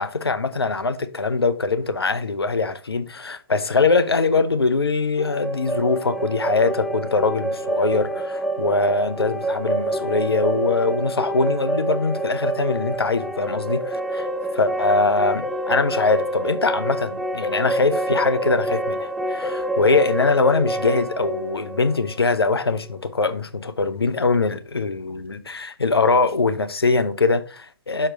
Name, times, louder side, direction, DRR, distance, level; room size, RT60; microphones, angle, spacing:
voice 1, 0.0-14.3 14.5-28.1, left 3 dB, 80° left, 0.8 m, -22 dB
sound 1, 5.2-23.0, right 1 dB, ahead, 0.5 m, -27 dB
6.3 x 4.4 x 4.4 m
figure-of-eight pair, 120°, 13 cm